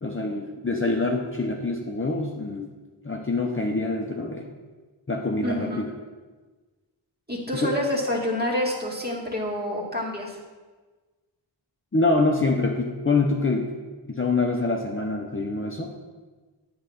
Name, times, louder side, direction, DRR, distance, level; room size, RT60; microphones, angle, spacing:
voice 1, 0.0-2.7 3.0-4.5 5.1-5.8 7.6-7.7 11.9-13.7 14.1-15.9, left 3 dB, 25° left, 0 dB, 0.8 m, -25 dB
voice 2, 5.4-5.8 7.3-10.4, left 1 dB, 20° right, -2 dB, 2.0 m, -27 dB
8.7 x 3.9 x 7.0 m, 1.3 s
wide cardioid pair, 55°, 46 cm